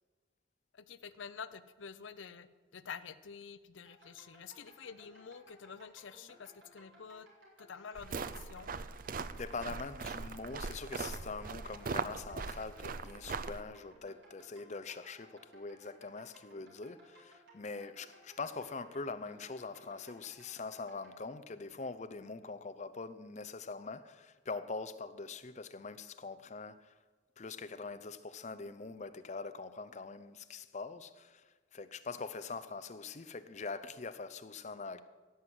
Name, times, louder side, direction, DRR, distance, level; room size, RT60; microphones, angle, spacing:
voice 1, 0.7-7.3 7.6-8.7, left 6 dB, 75° left, 0.6 m, -48 dB
sound 1, 3.9-21.2, right 1 dB, 60° right, 4.5 m, -60 dB
sound 2, 8.0-13.6, right 4 dB, 45° right, 0.5 m, -40 dB
voice 2, 9.2-27.0 27.4-35.0, left 4 dB, 35° left, 0.6 m, -43 dB
16.5 x 6.1 x 7.9 m
head